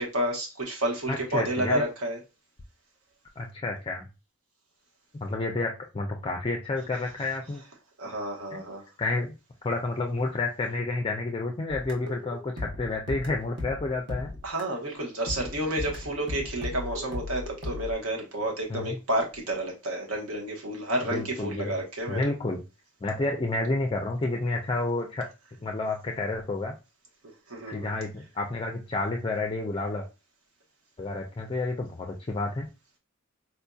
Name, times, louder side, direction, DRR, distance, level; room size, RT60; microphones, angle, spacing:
voice 1, 0.0-2.2 8.0-8.8 14.4-22.3 27.5-27.9, right 1 dB, 75° right, 1.1 m, -30 dB
voice 2, 1.1-1.8 3.4-4.1 5.2-7.6 8.5-8.6 9.0-9.3 9.6-14.3 18.7-19.0 21.1-21.8 22.1-22.6 23.0-25.3 25.6-26.7 27.7-30.1 31.0-32.7, left 2 dB, 25° left, 0.4 m, -30 dB
sound 1, 11.7-14.9 15.3-17.9, left 2 dB, 50° right, 1.0 m, -37 dB
4.2 x 2.7 x 2.3 m
head